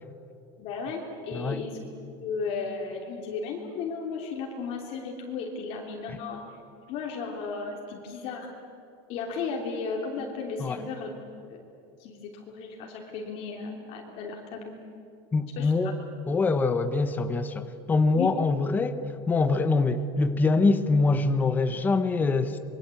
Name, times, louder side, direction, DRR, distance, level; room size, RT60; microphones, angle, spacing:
voice 1, 0.6-1.8 2.2-6.5 6.9-8.5 9.1-11.1 11.5-11.6 12.0-14.7 15.6-15.9 18.1-18.3, left 5 dB, 45° left, 0 dB, 3.1 m, -34 dB
voice 2, 1.3-1.7 6.1-6.2 10.6-10.8 15.3-16.0 16.3-22.6, left 3 dB, 15° left, 9 dB, 1.0 m, -24 dB
25.5 x 23.0 x 8.4 m, 2.6 s
supercardioid pair, 160°, 14 cm